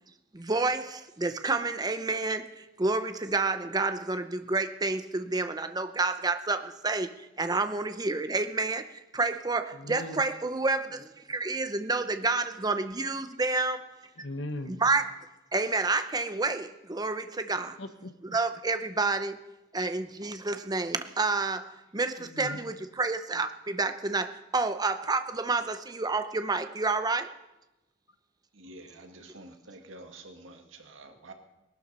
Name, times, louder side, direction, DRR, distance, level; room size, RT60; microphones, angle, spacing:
voice 1, 0.3-13.9 14.8-15.0 15.5-17.8 18.3-19.4 19.7-27.3, right 3 dB, 20° right, 9 dB, 0.7 m, -29 dB
voice 2, 9.7-10.2 13.5-13.6 14.2-14.8 17.8-18.4 22.2-22.7, left 1 dB, 70° left, 8 dB, 1.3 m, -39 dB
voice 3, 28.5-31.3, right 2 dB, 85° right, 4 dB, 1.9 m, -48 dB
19.0 x 12.0 x 5.5 m, 1.0 s
head